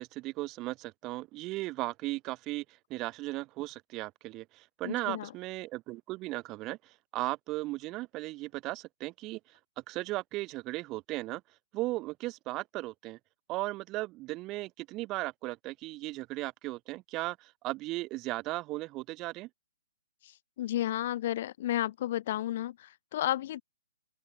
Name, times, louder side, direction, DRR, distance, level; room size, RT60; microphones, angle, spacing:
voice 1, 0.0-2.6 2.9-9.4 9.9-11.4 11.7-13.2 13.5-19.5, right 19 dB, 25° right, 0.6 m, -36 dB
voice 2, 4.8-5.3 20.2-23.6, left 13 dB, 45° left, 0.4 m, -32 dB
open air
hypercardioid pair, 150°, 0 cm